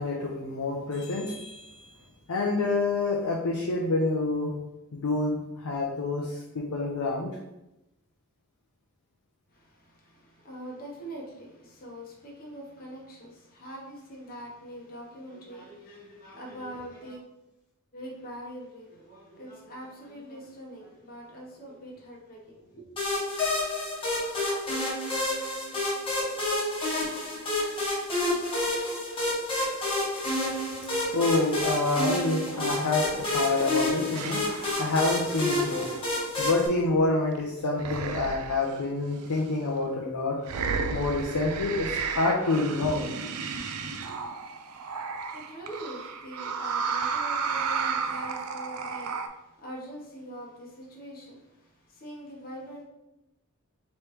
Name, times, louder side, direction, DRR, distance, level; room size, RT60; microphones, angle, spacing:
voice 1, 0.0-1.9 2.3-4.5 4.9-7.4 31.1-34.4 34.8-35.9 36.4-40.4 40.9-43.0, left 3 dB, 70° left, -2 dB, 0.6 m, -27 dB
voice 2, 9.5-17.2 17.9-22.8 44.1-44.9 45.2-52.8, equal, 40° left, -2 dB, 1.0 m, -43 dB
sound 1, 23.0-36.7, left 1 dB, 25° left, 1.2 m, -29 dB
sound 2, 32.5-32.8 33.1-37.4 37.8-38.8 39.3-39.5 40.4-49.3, right 5 dB, 70° right, 0.4 m, -33 dB
3.3 x 3.1 x 4.6 m, 0.92 s
head